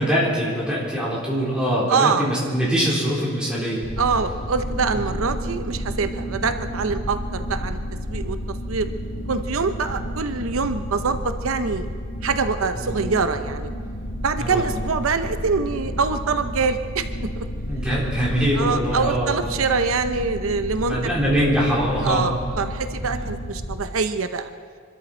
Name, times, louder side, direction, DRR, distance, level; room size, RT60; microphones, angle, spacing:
voice 1, 0.0-3.8 4.9-5.1 6.3-6.4 12.8-12.9 14.4-14.6 17.7-19.3 20.8-22.3 23.0-23.3, equal, 5° right, -6 dB, 3.9 m, -23 dB
voice 2, 1.9-2.3 4.0-7.8 8.1-8.9 9.3-11.9 12.2-13.7 14.2-17.1 17.4-17.5 18.6-21.1 22.0-24.5, right 4 dB, 85° right, 9 dB, 0.7 m, -24 dB
sound 1, 3.8-23.7, equal, 45° left, 2.0 m, -31 dB
25.5 x 13.0 x 4.4 m, 2.1 s
head